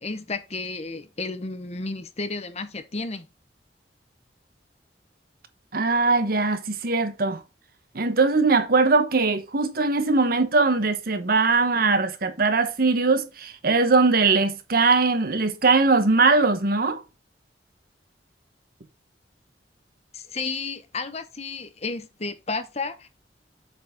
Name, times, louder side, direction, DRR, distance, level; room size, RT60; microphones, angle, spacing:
voice 1, 0.0-3.3 20.1-23.1, left 3 dB, 40° left, 0.9 m, -32 dB
voice 2, 5.7-7.4 7.9-17.0, right 3 dB, 55° right, 1.0 m, -21 dB
8.1 x 4.8 x 3.5 m
head